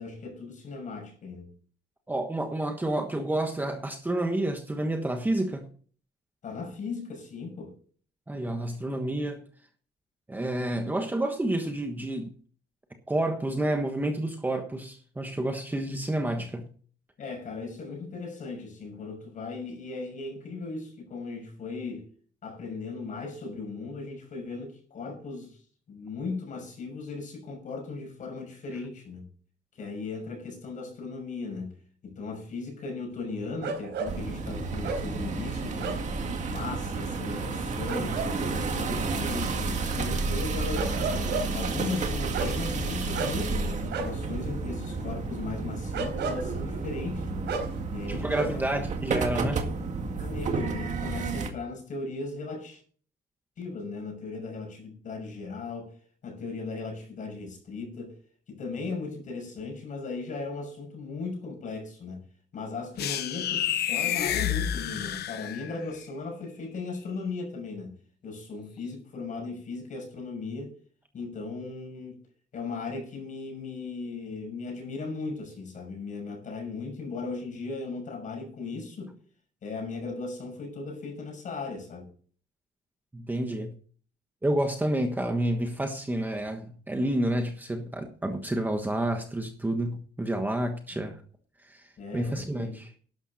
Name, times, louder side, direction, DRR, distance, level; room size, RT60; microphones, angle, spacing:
voice 1, 0.0-1.5 6.4-7.7 17.2-22.1 22.4-25.6 25.9-29.3 29.7-31.8 32.0-36.0 36.5-41.0 41.5-47.5 47.9-48.9 50.0-52.8 53.6-55.9 56.2-58.2 58.5-62.2 62.5-68.0 68.2-70.7 71.1-72.2 72.5-79.1 79.6-82.1 90.9-91.1 92.0-92.8, left 4 dB, 45° left, 6.4 m, -37 dB
voice 2, 2.1-5.7 8.3-9.4 10.3-12.3 13.1-16.7 48.1-49.6 83.1-83.7 84.4-91.2 91.6-92.9, right 1 dB, 10° right, 1.3 m, -29 dB
sound 1, 33.6-48.8 49.1-49.9, right 4 dB, 80° right, 4.3 m, -36 dB
sound 2, 34.0-51.5, right 4 dB, 40° right, 2.0 m, -31 dB
sound 3, 63.0-65.9, left 10 dB, 65° left, 1.0 m, -29 dB
12.0 x 11.5 x 4.2 m
cardioid pair, 160°, 18 cm